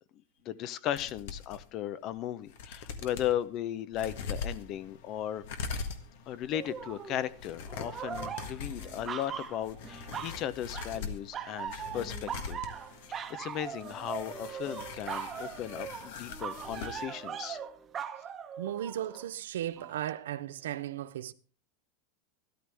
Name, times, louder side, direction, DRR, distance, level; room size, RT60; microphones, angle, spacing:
voice 1, 0.4-5.4 6.3-12.6 13.1-17.6, left 11 dB, 45° left, 0.7 m, -36 dB
sound 1, 1.0-1.6 2.1-2.2 2.5-3.3 3.9-17.1 17.3-17.4, left 5 dB, 70° left, 1.5 m, -42 dB
sound 2, 6.5-7.3 7.7-10.4 10.7-11.0 11.3-19.2 19.8-19.9, right 8 dB, 25° right, 1.0 m, -40 dB
voice 2, 18.6-21.3, right 11 dB, 85° right, 0.6 m, -36 dB
13.0 x 12.0 x 3.5 m
supercardioid pair, 130°, 0 cm